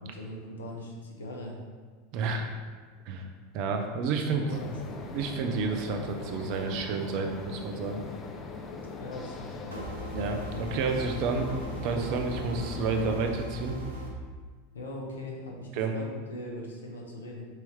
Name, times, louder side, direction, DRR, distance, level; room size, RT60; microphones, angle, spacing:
voice 1, 0.0-1.6 2.2-2.4 4.3-5.0 9.0-9.9 14.7-17.5, left 1 dB, 80° left, -1 dB, 1.2 m, -40 dB
voice 2, 2.1-2.5 3.0-3.3 3.5-4.4 5.1-8.0 10.1-13.8 15.7-15.9, right 4 dB, 55° right, 4 dB, 0.8 m, -30 dB
sound 1, 4.5-13.2, left 4 dB, 30° left, 0.8 m, -41 dB
sound 2, 9.7-14.1, equal, 80° right, 1.2 m, -39 dB
6.0 x 4.5 x 3.6 m, 1.5 s
figure-of-eight pair, 85°, 0 cm